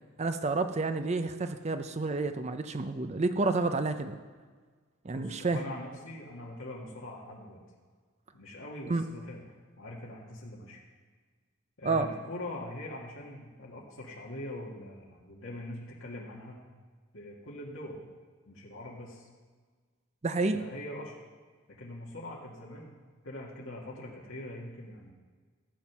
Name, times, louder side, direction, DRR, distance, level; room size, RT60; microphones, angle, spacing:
voice 1, 0.2-4.2 5.0-5.6 8.9-9.0 11.8-12.1 20.2-20.6, right 3 dB, 30° right, 9 dB, 0.5 m, -29 dB
voice 2, 5.1-7.6 8.3-9.4 9.8-10.8 11.8-16.6 17.1-18.0 18.5-19.3 20.6-21.1 21.8-23.0 23.2-25.1, left 1 dB, 65° left, -4 dB, 1.9 m, -42 dB
15.0 x 7.3 x 6.0 m, 1.5 s
head